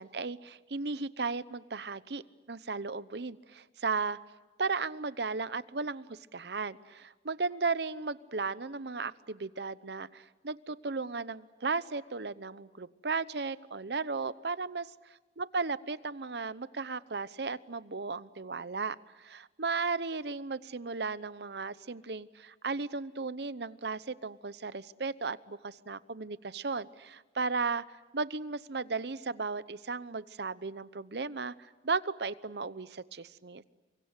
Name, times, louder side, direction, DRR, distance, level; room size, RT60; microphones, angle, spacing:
voice 1, 0.0-2.2 2.5-4.2 4.6-14.9 15.4-33.6, right 4 dB, 65° right, 16 dB, 0.9 m, -35 dB
29.5 x 24.5 x 8.3 m, 1.2 s
head